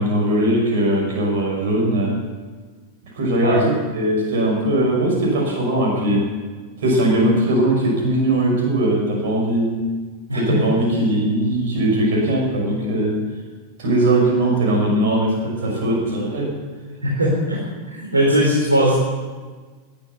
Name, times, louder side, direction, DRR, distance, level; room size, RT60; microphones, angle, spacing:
voice 1, 0.0-2.2 3.0-6.3 6.8-9.8 10.3-13.2 13.8-16.5, right 1 dB, 55° right, 0 dB, 6.0 m, -20 dB
voice 2, 17.0-17.6 17.9-18.9, equal, 80° right, -4 dB, 4.0 m, -19 dB
16.5 x 12.0 x 6.9 m, 1.4 s
figure-of-eight pair, 90°, 0 cm